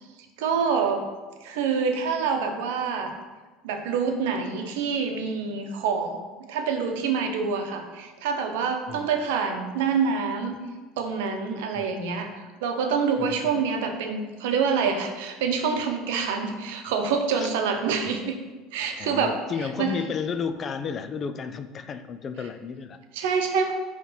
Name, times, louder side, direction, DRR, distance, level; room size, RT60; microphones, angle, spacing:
voice 1, 0.4-1.0 1.4-3.1 3.6-6.2 6.5-10.6 11.0-12.3 12.6-18.4 18.7-19.4 19.8-19.9 23.1-23.7, right 5 dB, 85° right, 5 dB, 0.8 m, -26 dB
voice 2, 13.2-13.6 17.4-17.5 18.0-18.1 19.0-23.0, left 6 dB, 35° left, 10 dB, 0.4 m, -33 dB
5.5 x 3.2 x 5.5 m, 1.3 s
supercardioid pair, 130°, 0 cm